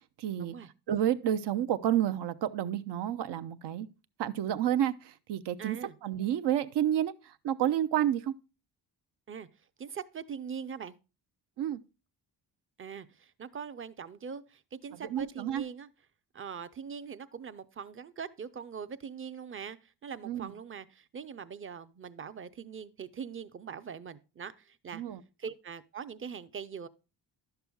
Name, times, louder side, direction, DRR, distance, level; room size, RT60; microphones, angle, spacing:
voice 1, 0.2-0.5 0.9-3.9 4.2-5.8 6.0-7.1 7.4-8.3 11.6-11.8 15.1-15.6 20.2-20.5 24.9-25.2, right 11 dB, 70° right, 0.6 m, -30 dB
voice 2, 5.6-6.0 9.3-9.5 9.8-11.0 12.8-15.9 16.3-25.0 25.4-26.9, right 6 dB, 30° right, 0.5 m, -42 dB
11.0 x 6.8 x 2.3 m
cardioid pair, 70°, 43 cm